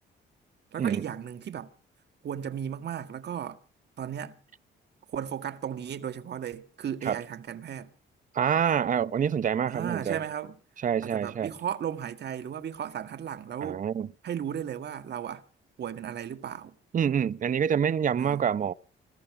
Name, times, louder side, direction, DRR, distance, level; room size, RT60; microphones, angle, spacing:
voice 1, 0.7-1.7 2.2-3.6 4.0-4.4 5.1-7.9 9.7-10.5 11.0-13.8 14.2-15.4 15.8-16.8 18.2-18.4, right 9 dB, 60° right, 1.9 m, -35 dB
voice 2, 8.3-10.2 10.8-11.5 13.6-14.1 16.9-18.7, right 8 dB, 40° right, 0.7 m, -26 dB
20.5 x 14.5 x 4.8 m
cardioid pair, 90°, 20 cm